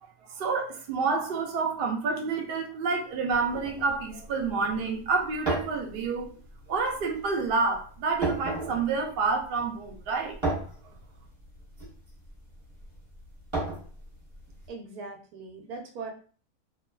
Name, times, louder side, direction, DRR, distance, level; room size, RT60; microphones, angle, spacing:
voice 1, 0.3-6.3 6.7-10.4, right 4 dB, 65° right, 0.5 m, -28 dB
sound 1, 3.3-14.7, right 2 dB, 25° right, 0.8 m, -36 dB
voice 2, 14.7-16.1, right 4 dB, 90° right, 1.1 m, -40 dB
2.7 x 2.3 x 2.2 m
omnidirectional pair, 1.6 m